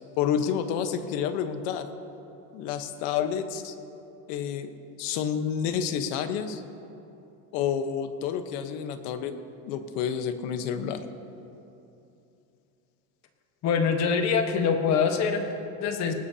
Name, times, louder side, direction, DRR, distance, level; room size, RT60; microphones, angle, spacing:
voice 1, 0.2-1.9 2.5-3.7 4.3-4.7 5.0-6.6 7.5-9.3 9.7-11.0, left 8 dB, 80° left, 8 dB, 1.2 m, -29 dB
voice 2, 13.6-16.1, left 6 dB, 50° left, 4 dB, 1.4 m, -24 dB
19.5 x 19.0 x 2.9 m, 2.8 s
cardioid pair, 145°, 36 cm